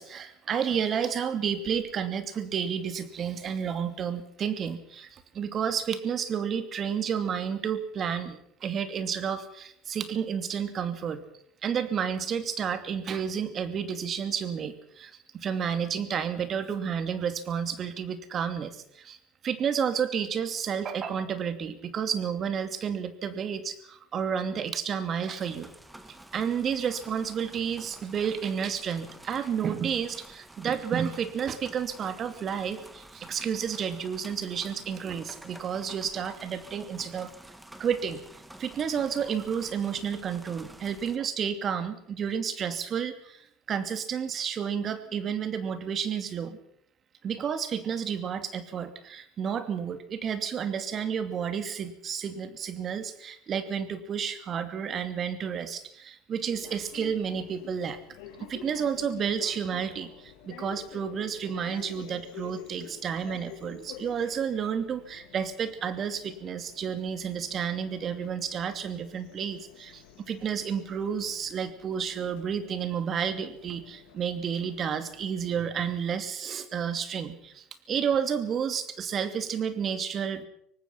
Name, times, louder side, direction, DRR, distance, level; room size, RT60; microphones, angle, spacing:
voice 1, 0.0-11.2 11.6-19.2 19.4-25.7 26.3-37.3 37.8-38.2 38.6-46.6 47.2-58.0 58.4-80.5, right 7 dB, 40° right, 10 dB, 2.6 m, -31 dB
sound 1, 25.4-41.2, right 1 dB, 10° right, 2.1 m, -50 dB
sound 2, 56.5-75.7, left 9 dB, 70° left, 2.6 m, -49 dB
24.0 x 19.0 x 5.9 m, 0.72 s
hypercardioid pair, 80°, 0 cm